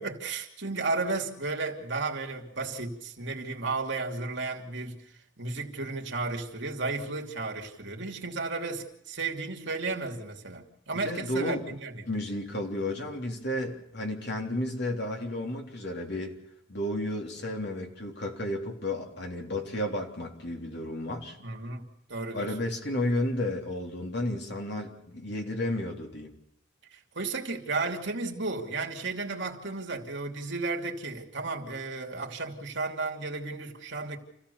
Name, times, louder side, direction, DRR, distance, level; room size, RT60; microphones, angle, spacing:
voice 1, 0.0-5.1 5.4-12.1 21.4-22.5 26.9-34.2, right 3 dB, 60° right, 2.9 m, -33 dB
voice 2, 11.0-11.6 12.1-16.4 16.7-21.4 22.3-26.3, left 1 dB, 55° left, 3.6 m, -32 dB
28.0 x 16.0 x 7.1 m
head